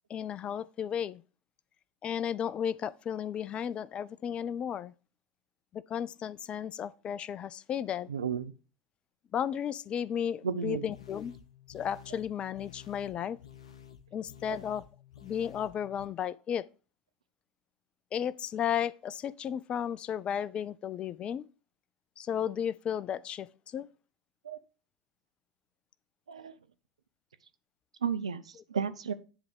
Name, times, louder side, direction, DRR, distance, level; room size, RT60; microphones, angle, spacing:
voice 1, 0.1-1.2 2.0-4.9 5.7-8.1 9.3-11.3 11.7-13.4 14.1-14.8 15.2-16.7 18.1-21.5 22.2-23.9, left 9 dB, 35° left, 0.4 m, -34 dB
voice 2, 8.1-8.5 10.4-10.9 14.5-14.6 24.4-24.6 26.3-26.5 28.0-29.1, right 7 dB, 80° right, 0.6 m, -33 dB
sound 1, 10.9-16.1, left 10 dB, 75° left, 0.7 m, -52 dB
10.0 x 3.5 x 5.0 m
figure-of-eight pair, 80°, 3 cm